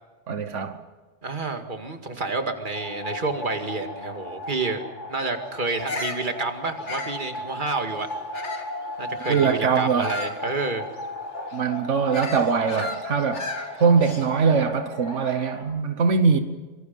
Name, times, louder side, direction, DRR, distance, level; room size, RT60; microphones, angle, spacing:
voice 1, 0.3-0.8 9.3-10.1 11.5-13.5 13.8-16.4, right 5 dB, 85° right, 1.5 m, -22 dB
voice 2, 1.2-4.8 5.1-8.1 9.0-10.9, right 3 dB, 45° right, 2.2 m, -29 dB
sound 1, 2.7-15.6, left 2 dB, 90° left, 6.9 m, -36 dB
Bird vocalization bird call bird song, 5.7-8.8 9.2-14.5, left 2 dB, 75° left, 2.7 m, -35 dB
25.5 x 24.0 x 5.4 m
omnidirectional pair, 1.2 m